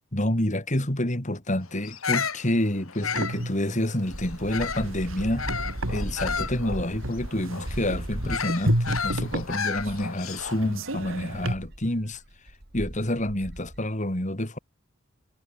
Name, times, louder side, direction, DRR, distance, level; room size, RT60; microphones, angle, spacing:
voice 1, 0.1-5.5 5.9-12.2 12.7-14.6, left 1 dB, 35° left, 3.1 m, -28 dB
Bird vocalization bird call bird song, 1.8-4.9 5.4-10.7, left 6 dB, 80° left, 7.3 m, -33 dB
sound 1, 3.0-11.5, right 1 dB, 65° right, 3.3 m, -32 dB
sound 2, 4.1-10.1 10.4-10.5 10.8-13.8, right 1 dB, 50° right, 2.5 m, -37 dB
head